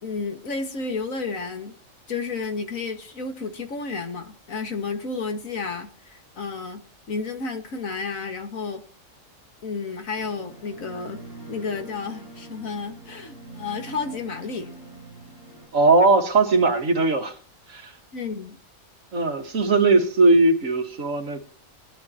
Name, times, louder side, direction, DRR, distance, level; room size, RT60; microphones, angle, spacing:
voice 1, 0.0-1.7 2.1-6.8 7.1-8.8 9.6-11.2 11.5-14.7 18.1-18.6, left 4 dB, 80° left, 2.2 m, -31 dB
sound 1, 10.1-15.7, right 2 dB, 50° left, 6.5 m, -44 dB
voice 2, 15.7-17.3 17.7-17.9 19.1-21.4, right 3 dB, 70° right, 2.0 m, -19 dB
20.0 x 12.0 x 2.9 m
omnidirectional pair, 1.4 m